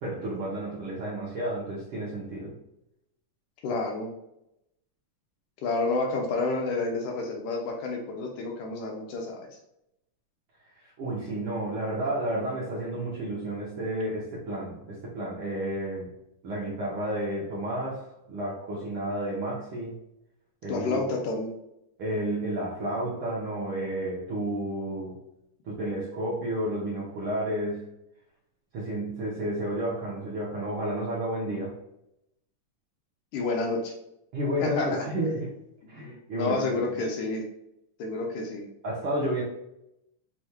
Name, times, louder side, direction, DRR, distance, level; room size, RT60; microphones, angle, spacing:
voice 1, 0.0-2.5 10.8-16.1 16.4-19.9 20.6-21.0 22.0-25.2 25.6-27.8 28.7-31.7 34.3-35.5 35.9-36.8 38.8-39.4, right 1 dB, 65° right, -6 dB, 1.4 m, -31 dB
voice 2, 3.6-4.1 5.6-9.5 20.7-21.5 33.3-33.9 34.6-35.1 35.9-37.4 38.0-38.7, left 3 dB, 85° left, 1 dB, 2.3 m, -29 dB
6.7 x 3.0 x 2.2 m, 0.82 s
omnidirectional pair, 3.6 m